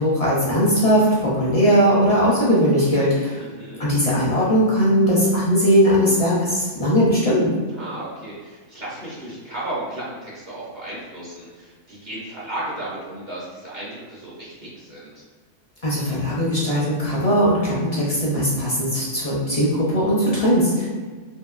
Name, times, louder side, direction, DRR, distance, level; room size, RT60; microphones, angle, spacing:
voice 1, 0.0-3.4 3.8-7.5 15.8-20.9, equal, 45° left, -7 dB, 0.5 m, -19 dB
voice 2, 3.4-3.8 7.7-15.2, right 1 dB, 45° right, -7 dB, 0.7 m, -34 dB
2.7 x 2.6 x 2.3 m, 1.4 s
omnidirectional pair, 1.3 m